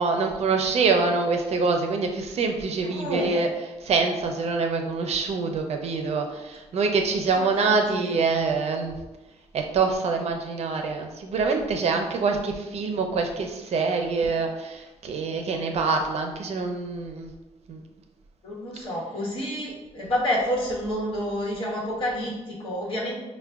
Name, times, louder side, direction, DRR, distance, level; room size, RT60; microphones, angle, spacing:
voice 1, 0.0-3.5 3.9-8.9 9.5-17.3 17.7-17.8, right 4 dB, 65° right, 4 dB, 0.5 m, -25 dB
voice 2, 2.8-3.5 7.3-8.2 18.4-23.2, equal, 45° left, -5 dB, 1.1 m, -29 dB
5.4 x 2.2 x 2.3 m, 1.1 s
cardioid pair, 115°, 12 cm